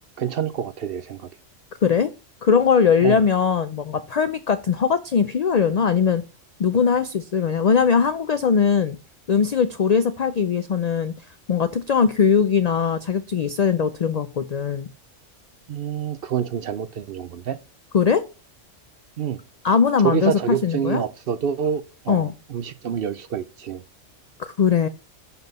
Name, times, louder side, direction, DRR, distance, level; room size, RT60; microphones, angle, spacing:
voice 1, 0.2-1.3 3.0-3.2 15.7-17.6 19.2-19.4 20.0-23.8, right 9 dB, 60° right, 0.7 m, -27 dB
voice 2, 2.4-6.2 6.6-9.0 9.3-11.1 11.5-14.9 17.9-18.2 19.6-21.0 22.1-22.3 24.4-24.9, left 6 dB, 80° left, 0.3 m, -20 dB
6.0 x 5.5 x 5.3 m
omnidirectional pair, 1.3 m